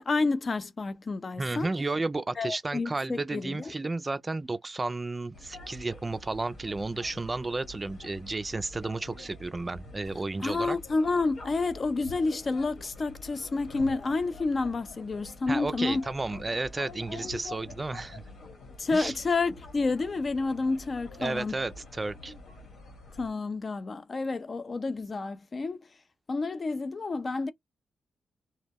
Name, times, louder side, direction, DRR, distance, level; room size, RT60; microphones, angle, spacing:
voice 1, 0.0-1.7 2.4-3.7 10.4-16.0 18.8-21.5 23.2-25.8 26.3-27.5, left 3 dB, 45° left, 0.4 m, -29 dB
voice 2, 1.4-10.8 15.5-18.2 18.9-19.1 21.2-22.3, right 3 dB, 30° right, 0.3 m, -32 dB
sound 1, 5.3-23.3, left 2 dB, 80° left, 1.4 m, -47 dB
2.2 x 2.0 x 3.4 m
supercardioid pair, 50°, 0 cm